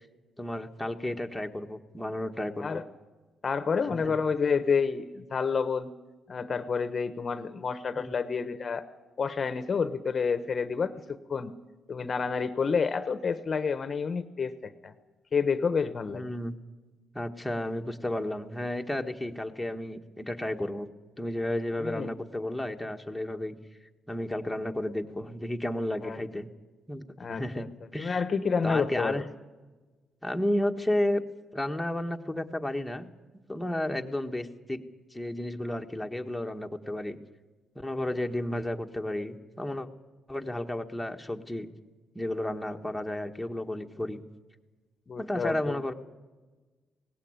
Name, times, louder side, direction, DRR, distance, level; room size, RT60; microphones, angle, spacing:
voice 1, 0.4-2.8 4.0-4.1 8.0-8.2 16.1-16.5 17.1-20.9 21.2-23.6 24.1-26.5 26.9-27.7 27.9-28.2 28.6-29.2 30.2-31.2 31.5-33.1 33.5-37.2 37.7-39.9 40.3-41.7 42.1-44.2 45.2-45.9, left 1 dB, 5° left, 3 dB, 1.5 m, -32 dB
voice 2, 3.4-5.9 6.3-8.9 9.2-11.5 11.9-14.9 15.3-16.2 21.8-22.1 26.0-26.2 27.2-27.7 28.0-29.2 45.1-45.8, left 5 dB, 45° left, 12 dB, 1.0 m, -29 dB
18.0 x 16.0 x 9.0 m, 1.2 s
cardioid pair, 80°, 0 cm